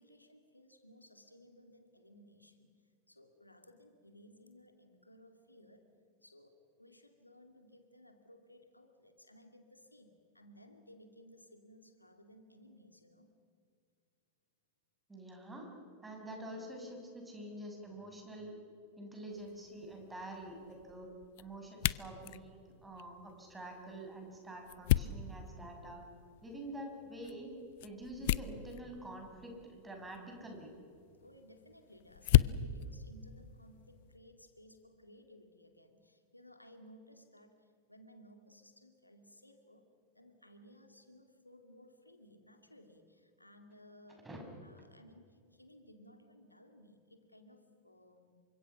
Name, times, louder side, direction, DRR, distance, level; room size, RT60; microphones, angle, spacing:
voice 1, 0.0-2.8 3.1-5.9 6.2-13.3 31.2-39.8 40.1-48.4, equal, 85° left, 7 dB, 2.4 m, -59 dB
voice 2, 15.1-15.8 16.0-18.6 19.0-21.1 21.4-26.0 26.4-27.5 27.8-30.7 44.2-44.4, right 1 dB, 10° right, 1 dB, 6.7 m, -47 dB
sound 1, 19.3-34.2, left 15 dB, 50° left, 0.5 m, -37 dB
28.5 x 25.0 x 5.9 m, 2.3 s
figure-of-eight pair, 90°, 0 cm